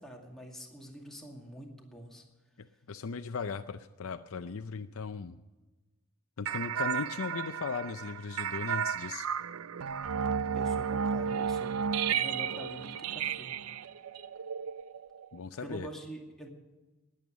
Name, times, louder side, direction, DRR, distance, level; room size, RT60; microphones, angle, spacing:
voice 1, 0.0-2.2 10.5-11.8 12.1-13.6 15.6-16.5, equal, ahead, -1 dB, 2.3 m, -45 dB
voice 2, 2.6-5.4 6.4-9.3 15.3-15.9, left 5 dB, 70° left, 9 dB, 0.5 m, -38 dB
sound 1, 6.5-15.4, right 7 dB, 80° right, 0.4 m, -33 dB
20.0 x 8.6 x 6.3 m, 1.1 s
head